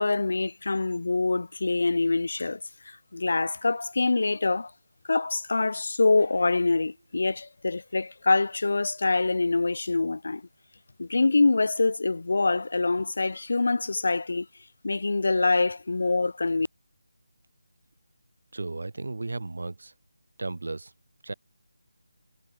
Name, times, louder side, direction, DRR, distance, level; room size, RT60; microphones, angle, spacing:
voice 1, 0.0-2.6 2.9-4.7 5.1-10.4 11.0-14.5 14.8-16.7, left 3 dB, 65° left, 1.1 m, -25 dB
voice 2, 18.5-19.9 20.4-20.9 21.2-21.3, right 3 dB, 70° right, 3.5 m, -34 dB
figure-of-eight pair, 160°, 0 cm